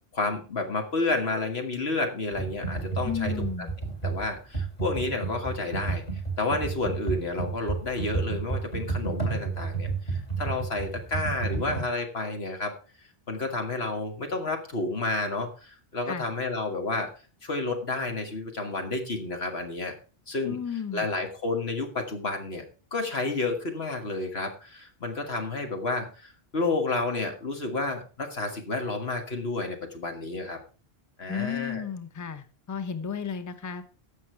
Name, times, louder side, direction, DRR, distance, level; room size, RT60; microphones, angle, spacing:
voice 1, 0.1-3.7 4.0-6.0 6.4-12.7 13.3-17.1 17.4-20.0 20.3-20.6 20.9-22.6 22.9-30.6 31.2-31.9, left 3 dB, 80° left, 5 dB, 2.1 m, -30 dB
Computer keyboard, 2.3-11.8, right 4 dB, 40° left, 3.4 m, -31 dB
voice 2, 3.0-3.7 16.1-16.3 20.4-21.1 31.3-33.9, left 7 dB, 20° left, 9 dB, 0.8 m, -33 dB
15.0 x 5.9 x 4.5 m, 0.36 s
omnidirectional pair, 1.0 m